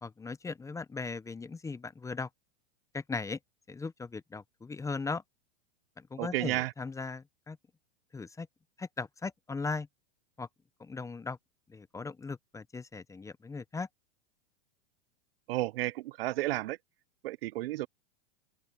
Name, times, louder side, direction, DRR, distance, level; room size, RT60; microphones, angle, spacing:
voice 1, 0.0-2.3 2.9-3.4 3.7-5.2 6.0-7.6 8.1-8.5 8.8-9.9 10.4-10.5 10.8-11.4 11.7-13.9, left 4 dB, 10° left, 0.8 m, -38 dB
voice 2, 6.2-6.7 15.5-16.8 17.2-17.9, right 17 dB, 65° right, 0.7 m, -32 dB
open air
hypercardioid pair, 115°, 31 cm